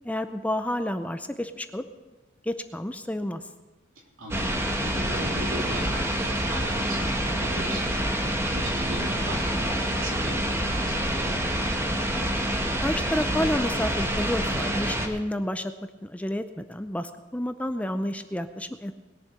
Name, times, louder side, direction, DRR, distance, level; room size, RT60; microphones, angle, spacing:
voice 1, 0.0-1.8 2.4-3.4 12.8-15.7 16.0-18.9, left 1 dB, 5° left, 9 dB, 0.5 m, -30 dB
voice 2, 3.9-4.5 4.8-11.5, equal, 85° right, -1 dB, 3.3 m, -39 dB
sound 1, 4.3-15.1, right 1 dB, 15° right, 1.2 m, -27 dB
20.5 x 7.2 x 6.5 m, 1.2 s
head